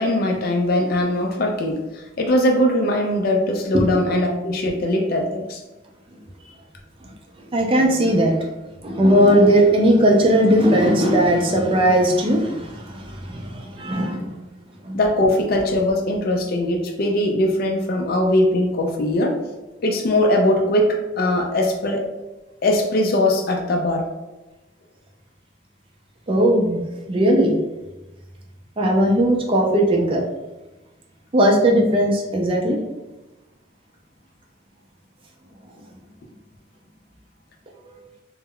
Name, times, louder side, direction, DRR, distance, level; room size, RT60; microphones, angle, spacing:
voice 1, 0.0-5.6 14.9-19.4 19.8-22.1 22.6-24.1, left 1 dB, 50° left, 2 dB, 0.3 m, -20 dB
voice 2, 7.5-8.3 8.8-14.3 14.8-15.0 26.3-26.8 27.1-27.5 28.8-30.2 31.3-32.8, right 1 dB, 25° right, -1 dB, 0.4 m, -18 dB
2.2 x 2.0 x 3.5 m, 1.1 s
head